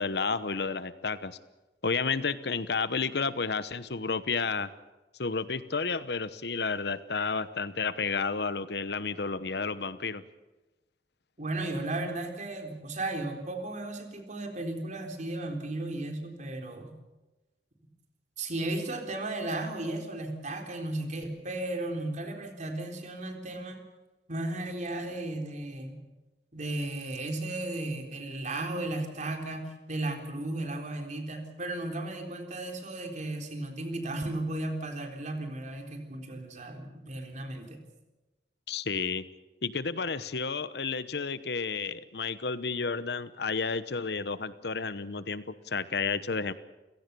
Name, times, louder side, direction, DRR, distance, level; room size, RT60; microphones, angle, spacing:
voice 1, 0.0-1.4 1.8-4.7 5.2-10.2 38.7-39.2 39.6-46.5, left 4 dB, 65° left, 14 dB, 1.0 m, -31 dB
voice 2, 11.4-16.9 18.4-23.8 24.3-26.0 26.5-37.8, right 2 dB, 45° right, 3 dB, 3.8 m, -35 dB
30.0 x 17.0 x 6.9 m, 1.1 s
head